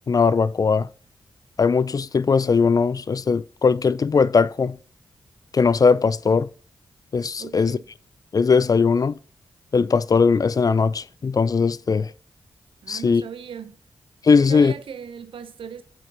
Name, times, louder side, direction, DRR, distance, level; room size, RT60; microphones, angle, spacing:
voice 1, 0.1-0.9 1.6-4.8 5.5-6.5 7.1-7.8 8.3-9.2 9.7-12.1 12.9-13.2 14.2-14.7, left 5 dB, 45° left, 0.4 m, -19 dB
voice 2, 7.4-7.9 12.8-13.8 14.3-15.8, right 7 dB, 85° right, 0.8 m, -38 dB
7.5 x 4.9 x 4.0 m
cardioid pair, 60°, 9 cm